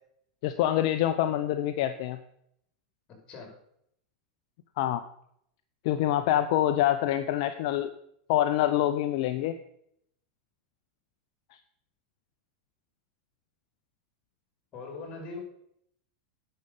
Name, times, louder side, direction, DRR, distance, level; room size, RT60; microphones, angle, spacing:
voice 1, 0.4-2.2 4.8-5.0 5.8-7.9 8.3-9.5, left 12 dB, 60° left, 8 dB, 0.7 m, -26 dB
voice 2, 14.7-15.4, left 3 dB, 35° left, 2 dB, 5.1 m, -40 dB
10.0 x 6.8 x 7.2 m, 0.71 s
hypercardioid pair, 115°, 3 cm